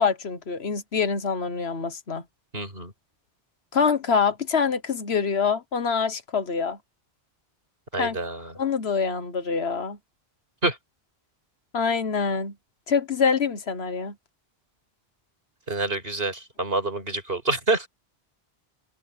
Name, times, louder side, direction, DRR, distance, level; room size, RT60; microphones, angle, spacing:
voice 1, 0.0-2.2 3.7-6.8 8.0-8.2 8.5-10.0 11.7-12.5 12.9-14.1, left 5 dB, 80° left, 1.6 m, -25 dB
voice 2, 2.5-2.9 7.9-8.5 10.6-10.8 15.7-17.9, right 2 dB, 65° right, 5.6 m, -27 dB
omnidirectional pair, 1.1 m